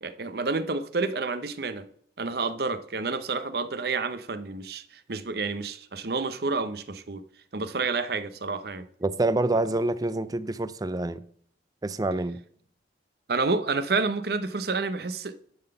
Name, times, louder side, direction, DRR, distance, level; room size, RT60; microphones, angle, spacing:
voice 1, 0.0-1.9 2.2-7.2 7.5-8.9 13.3-15.4, right 4 dB, 55° right, 0.7 m, -29 dB
voice 2, 9.0-11.2 11.8-12.4, right 2 dB, 20° right, 0.4 m, -27 dB
11.0 x 3.9 x 6.8 m
head